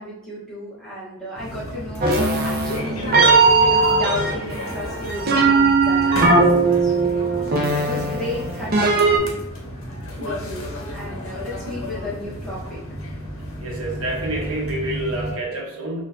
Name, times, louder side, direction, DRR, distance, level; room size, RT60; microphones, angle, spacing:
voice 1, 0.0-7.2 7.7-9.3 10.2-10.7 10.9-12.8, left 1 dB, 5° left, -9 dB, 1.2 m, -33 dB
sound 1, 1.4-15.3, left 1 dB, 75° left, 0.8 m, -32 dB
sound 2, 2.0-9.2, right 3 dB, 45° right, 0.6 m, -19 dB
voice 2, 9.5-10.1 13.6-16.0, right 2 dB, 85° right, -1 dB, 0.9 m, -29 dB
3.8 x 2.5 x 2.7 m, 0.83 s
head